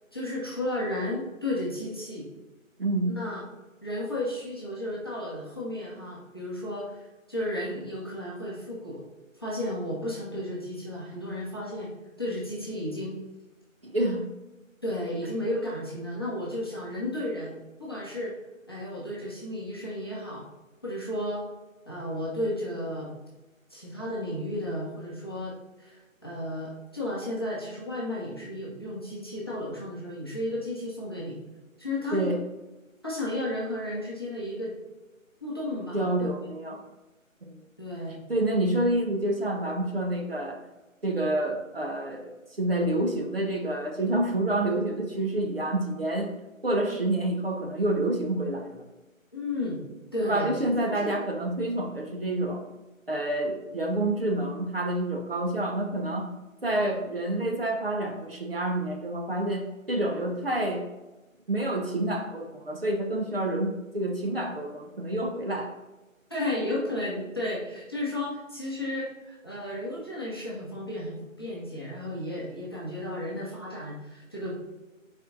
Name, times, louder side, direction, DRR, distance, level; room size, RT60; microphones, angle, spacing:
voice 1, 0.1-2.3 3.2-3.4 3.8-7.0 7.3-9.0 9.4-11.9 12.2-13.2 14.8-18.3 18.7-20.4 20.8-21.4 21.9-23.1 23.7-25.5 25.8-31.4 31.8-32.3 33.0-34.7 35.4-36.3 37.8-38.2 49.3-49.8 50.1-51.1 66.3-74.6, left 1 dB, 20° left, -6 dB, 0.9 m, -33 dB
voice 2, 2.8-3.2 13.8-14.3 32.1-32.4 35.9-36.8 37.4-37.6 38.3-40.6 41.0-46.3 46.6-48.8 50.2-52.6 53.1-56.3 56.6-60.8 61.5-65.7, right 1 dB, 45° right, 2 dB, 0.8 m, -28 dB
6.1 x 4.5 x 3.7 m, 1.1 s
figure-of-eight pair, 155°, 41 cm